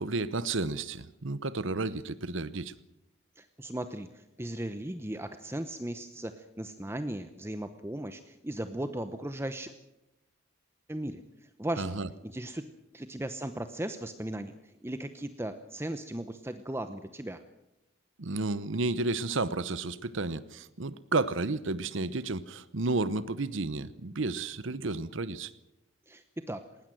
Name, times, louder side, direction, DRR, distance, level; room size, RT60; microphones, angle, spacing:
voice 1, 0.0-2.7 11.8-12.1 18.2-25.5, right 3 dB, 65° right, 16 dB, 0.9 m, -32 dB
voice 2, 3.4-9.7 10.9-11.2 11.6-11.9 12.2-14.5 14.8-17.4 26.1-26.7, right 1 dB, 10° right, 9 dB, 0.9 m, -37 dB
19.5 x 19.5 x 7.8 m, 0.92 s
head